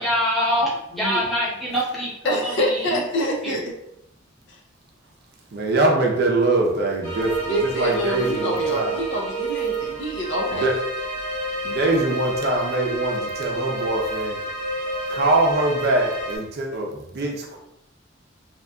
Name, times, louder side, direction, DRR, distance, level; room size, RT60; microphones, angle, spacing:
voice 1, 0.0-3.0 3.4-3.6, equal, ahead, -8 dB, 0.8 m, -25 dB
voice 2, 2.2-3.6 7.5-10.7, equal, 65° left, 0 dB, 0.6 m, -26 dB
voice 3, 5.5-9.0 10.5-10.7 11.6-14.4 15.1-17.6, right 2 dB, 55° right, 0 dB, 0.5 m, -23 dB
sound 1, 7.0-16.4, right 2 dB, 25° right, 1.0 m, -29 dB
2.8 x 2.6 x 2.2 m, 0.82 s
head